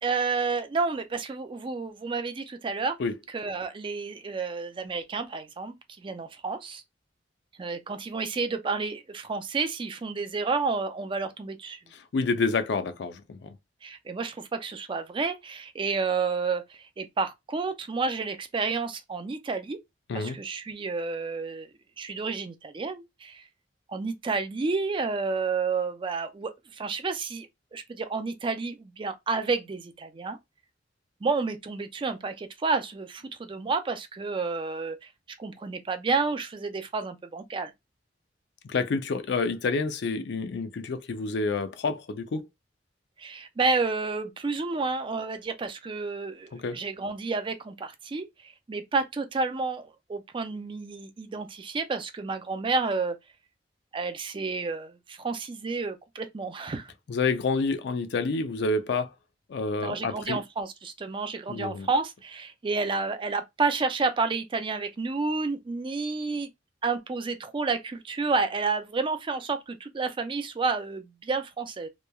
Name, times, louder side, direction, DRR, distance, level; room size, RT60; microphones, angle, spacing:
voice 1, 0.0-3.0 3.3-6.8 7.6-11.8 13.8-19.8 20.1-21.7 22.0-23.4 23.9-30.4 31.2-35.1 35.4-37.7 43.2-53.2 53.9-56.9 59.8-66.5 66.8-71.9, right 4 dB, 30° right, 0.4 m, -30 dB
voice 2, 12.1-13.5 20.1-20.4 38.6-42.5 46.5-46.8 57.1-59.1 59.5-60.4 61.5-61.9, left 4 dB, 65° left, 0.4 m, -28 dB
3.0 x 2.2 x 2.2 m
head